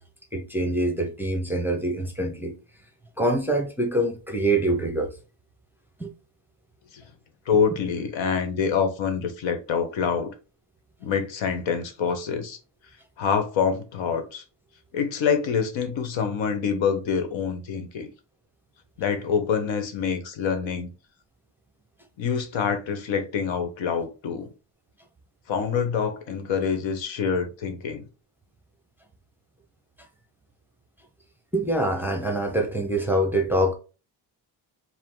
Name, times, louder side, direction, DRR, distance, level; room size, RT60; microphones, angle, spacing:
voice 1, 0.3-2.5 3.2-5.1 6.0-6.1 31.5-33.7, right 1 dB, 5° right, 0.6 m, -25 dB
voice 2, 7.5-10.4 11.0-12.6 13.2-14.4 14.9-18.1 19.0-20.9 22.2-24.5 25.5-28.1, left 6 dB, 85° left, 1.1 m, -26 dB
4.9 x 2.1 x 3.7 m
cardioid pair, 165°, 44 cm